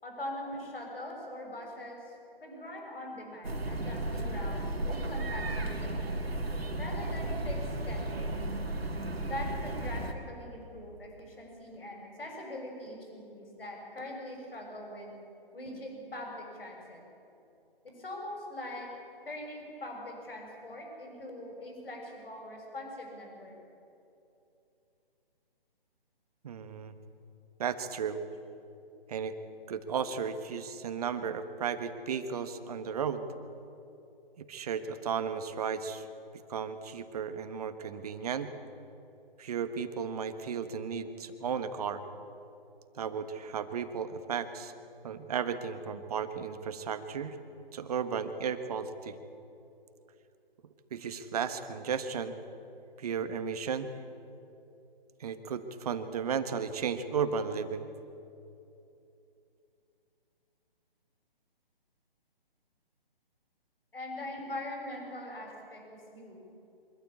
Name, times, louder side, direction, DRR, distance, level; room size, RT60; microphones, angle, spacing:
voice 1, 0.0-2.1 2.4-6.1 6.8-7.6 7.8-8.3 9.2-15.1 15.5-17.0 17.8-18.9 19.2-23.6 63.9-65.8 66.1-66.4, left 1 dB, 70° left, 1 dB, 6.7 m, -42 dB
sound 1, 3.4-10.1, right 1 dB, 85° right, 2.3 m, -34 dB
voice 2, 26.4-26.9 27.6-28.2 29.1-29.3 29.7-33.2 34.4-36.1 36.5-38.5 39.4-42.0 42.9-44.7 45.0-47.4 47.7-49.2 50.9-52.4 53.0-53.9 55.2-57.9, right 6 dB, 40° right, 9 dB, 1.5 m, -34 dB
24.5 x 14.0 x 8.6 m, 2.8 s
figure-of-eight pair, 145°, 30 cm